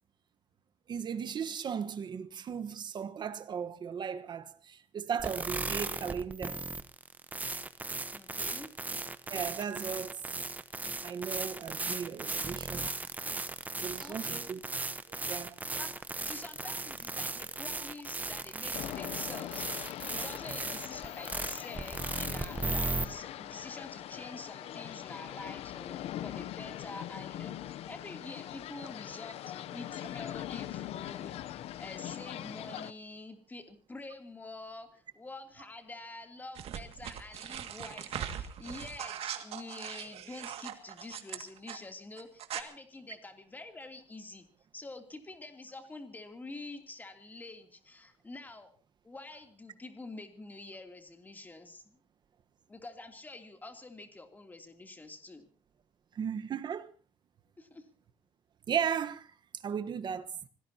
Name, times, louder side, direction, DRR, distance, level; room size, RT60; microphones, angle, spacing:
voice 1, 0.9-6.6 9.3-10.2 11.0-12.9 13.8-14.6 15.1-15.5 56.1-56.9 58.7-59.3 59.6-60.4, right 7 dB, 45° right, 1.3 m, -36 dB
sound 1, 5.2-23.1, right 3 dB, 15° right, 1.0 m, -37 dB
voice 2, 8.1-8.7 14.0-14.5 15.7-44.5 44.7-48.7 49.0-52.0 52.7-55.5 57.6-57.9, left 2 dB, 15° left, 3.0 m, -47 dB
sound 2, 18.7-32.9, left 12 dB, 80° left, 0.7 m, -41 dB
sound 3, 36.6-41.8 42.2-42.6, right 10 dB, 75° right, 2.2 m, -40 dB
25.5 x 18.5 x 2.9 m
cardioid pair, 135°, 10 cm